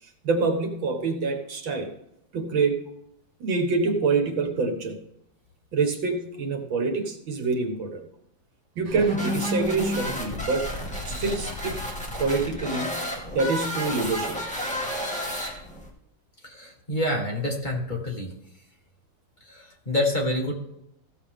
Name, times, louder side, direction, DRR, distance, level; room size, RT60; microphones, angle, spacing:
voice 1, 0.0-1.9 2.3-2.9 3.4-5.0 5.7-8.0 8.8-10.7 11.1-11.8 12.2-13.1 13.3-14.5, right 4 dB, 80° right, 4 dB, 2.3 m, -26 dB
sound 1, 8.9-15.9, equal, 5° left, 2.1 m, -31 dB
voice 2, 16.4-18.3 19.5-20.5, left 1 dB, 25° left, -1 dB, 1.9 m, -27 dB
15.5 x 7.2 x 3.6 m, 0.80 s
omnidirectional pair, 2.1 m